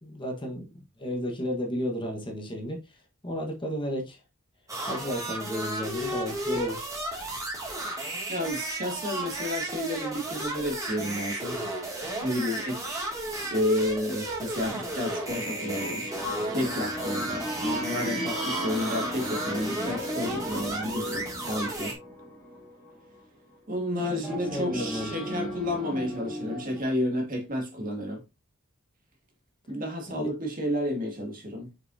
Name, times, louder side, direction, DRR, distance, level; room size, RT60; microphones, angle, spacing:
voice 1, 0.0-4.2 4.9-6.8 24.0-25.2 30.1-30.3, equal, 25° left, 1.4 m, -33 dB
sound 1, 4.7-21.9, right 1 dB, 15° right, 2.3 m, -34 dB
voice 2, 8.3-11.6 12.2-13.0 13.5-16.0 16.5-22.0 23.7-28.2 29.7-31.7, left 1 dB, 40° right, 2.1 m, -31 dB
sound 2, 15.3-23.1 24.2-26.8, equal, ahead, 2.5 m, -35 dB
6.6 x 5.9 x 2.7 m
head